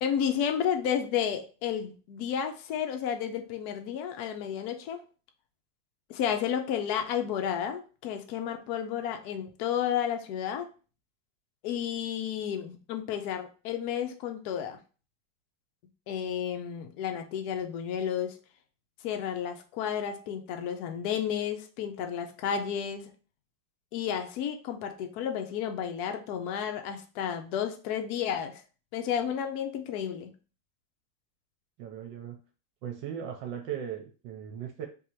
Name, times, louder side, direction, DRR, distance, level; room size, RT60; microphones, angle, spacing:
voice 1, 0.0-5.0 6.1-10.7 11.6-14.8 16.1-18.4 19.0-23.1 23.9-28.6 28.9-30.3, left 8 dB, 75° left, 6 dB, 0.8 m, -32 dB
voice 2, 31.8-32.4 32.8-34.9, right 9 dB, 70° right, 4 dB, 1.2 m, -38 dB
3.9 x 2.7 x 4.3 m, 0.35 s
omnidirectional pair, 2.3 m